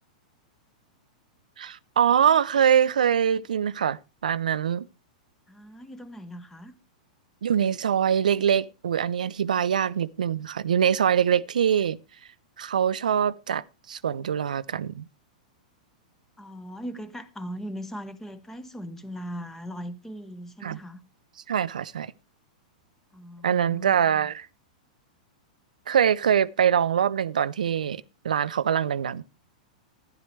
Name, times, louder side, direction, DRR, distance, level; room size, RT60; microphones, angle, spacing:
voice 1, 1.6-4.9 7.4-12.0 12.6-15.0 20.6-20.8 21.5-22.1 23.4-24.5 25.9-29.2, right 8 dB, 85° right, 0.5 m, -24 dB
voice 2, 5.5-6.7 16.4-21.0 23.1-24.3, equal, 10° left, 1.1 m, -39 dB
11.5 x 10.5 x 3.3 m
hypercardioid pair, 120°, 4 cm